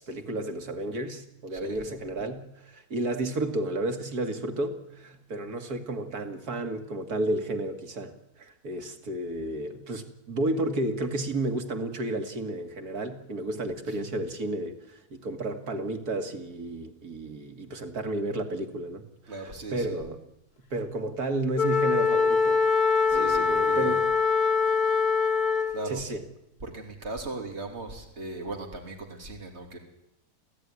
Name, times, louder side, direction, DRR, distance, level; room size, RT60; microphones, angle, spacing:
voice 1, 0.0-20.2 20.7-22.6 23.1-24.1 25.9-26.2, right 2 dB, 90° right, 6 dB, 2.6 m, -32 dB
voice 2, 19.3-20.0 23.1-24.0 25.7-26.0 26.6-29.8, right 2 dB, 45° right, 2 dB, 3.4 m, -38 dB
Wind instrument woodwind instrument, 21.6-25.9, left 5 dB, 85° left, 3.0 m, -23 dB
27.5 x 16.0 x 9.8 m, 0.85 s
omnidirectional pair, 1.6 m